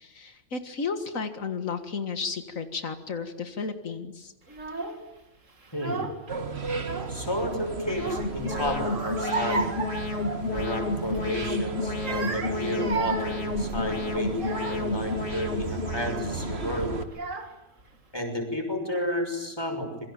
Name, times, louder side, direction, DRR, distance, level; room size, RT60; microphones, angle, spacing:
voice 1, 0.0-4.3, left 5 dB, 85° left, 7 dB, 2.1 m, -33 dB
Child speech kid speaking / Crying sobbing, 4.5-5.0 5.6-6.3 6.6-7.5 7.9-10.8 11.1-11.4 11.9-15.0 15.6-16.0 16.8-16.9 17.1-17.8, right 4 dB, 75° right, 3.0 m, -34 dB
voice 2, 5.7-6.1 7.1-9.7 10.5-17.0 18.1-19.9, left 1 dB, 20° left, 4 dB, 6.3 m, -31 dB
sound 1, 6.3-17.1, right 4 dB, 50° right, 1.9 m, -35 dB
Alarm, 7.1-17.0, left 3 dB, 50° left, 2.6 m, -32 dB
27.5 x 23.5 x 8.9 m, 0.95 s
omnidirectional pair, 1.4 m